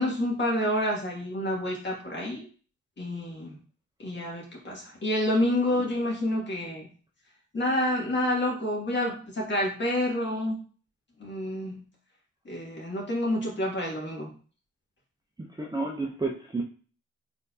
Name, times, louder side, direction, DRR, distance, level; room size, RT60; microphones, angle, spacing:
voice 1, 0.0-2.4 3.0-3.5 4.0-6.9 7.5-10.6 11.2-11.8 12.5-14.3, left 1 dB, 35° left, -2 dB, 2.2 m, -28 dB
voice 2, 15.6-16.6, right 3 dB, 15° right, 1 dB, 0.7 m, -31 dB
4.3 x 4.0 x 2.8 m, 0.39 s
cardioid pair, 90°, 30 cm